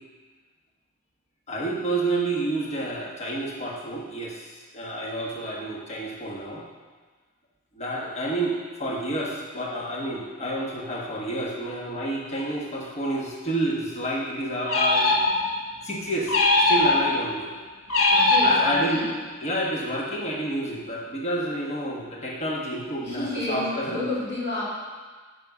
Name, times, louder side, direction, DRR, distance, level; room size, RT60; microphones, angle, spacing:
voice 1, 1.5-4.5 4.7-6.6 7.7-15.1 15.8-17.5 18.4-19.1 19.4-24.0, right 1 dB, 30° left, -3 dB, 1.2 m, -29 dB
sound 1, 14.7-15.7 16.3-17.3 17.9-19.1, left 2 dB, 70° left, 0.9 m, -21 dB
voice 2, 18.1-19.2 23.0-24.6, left 2 dB, 55° left, -7 dB, 2.9 m, -30 dB
8.7 x 5.3 x 5.9 m, 1.4 s
head